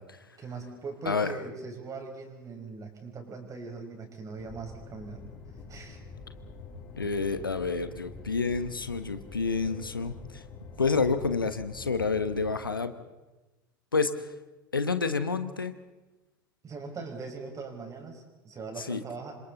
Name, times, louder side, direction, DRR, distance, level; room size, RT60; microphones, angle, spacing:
voice 1, 0.4-5.2 5.7-6.0 16.6-19.4, right 4 dB, 30° right, 3 dB, 5.5 m, -40 dB
voice 2, 1.1-1.4 7.0-10.4 10.8-12.9 13.9-14.3 14.7-15.7 18.8-19.0, left 4 dB, 90° left, 11 dB, 1.1 m, -29 dB
sound 1, 4.4-12.6, left 3 dB, 40° left, 5.8 m, -46 dB
27.5 x 26.0 x 4.0 m, 1.1 s
figure-of-eight pair, 80°, 11 cm